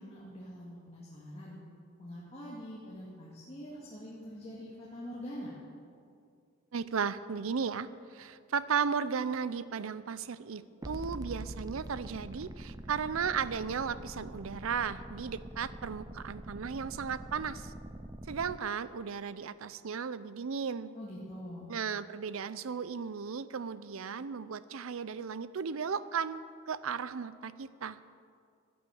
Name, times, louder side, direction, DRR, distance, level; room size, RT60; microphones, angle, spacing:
voice 1, 0.0-1.6 2.0-5.5 20.9-21.7, equal, 30° left, -6 dB, 2.0 m, -44 dB
voice 2, 6.7-17.7 18.3-20.9 21.7-28.0, right 6 dB, 70° right, 16 dB, 0.5 m, -35 dB
sound 1, 10.8-18.6, right 1 dB, 15° right, 0.4 m, -44 dB
15.0 x 9.4 x 7.1 m, 2.3 s
head